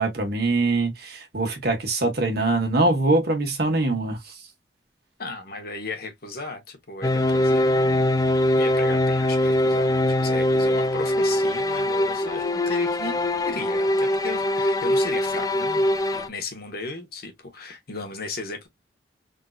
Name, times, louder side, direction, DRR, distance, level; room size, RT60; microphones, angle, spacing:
voice 1, 0.0-4.2, right 2 dB, 60° right, 1.4 m, -23 dB
voice 2, 5.2-8.1 8.5-15.9 16.1-18.7, left 3 dB, 60° left, 1.2 m, -36 dB
sound 1, 7.0-16.3, left 1 dB, 20° left, 0.4 m, -22 dB
3.8 x 2.6 x 2.4 m
head